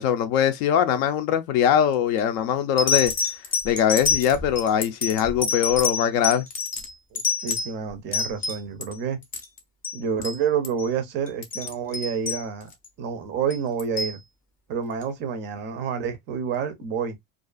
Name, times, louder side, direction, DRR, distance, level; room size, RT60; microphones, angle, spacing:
voice 1, 0.0-3.1 3.6-6.4, left 9 dB, 65° left, 0.5 m, -22 dB
sound 1, 1.9-2.2 2.8-8.9 9.2-9.6 9.8-10.0 10.2-10.4 10.6-10.9 11.3-12.9 13.5-14.2 15.0-15.1, left 5 dB, 20° left, 0.5 m, -27 dB
voice 2, 7.1-9.2 9.9-12.7 13.0-14.2 14.7-17.2, right 7 dB, 30° right, 0.4 m, -28 dB
2.5 x 2.3 x 2.3 m
supercardioid pair, 155°, 41 cm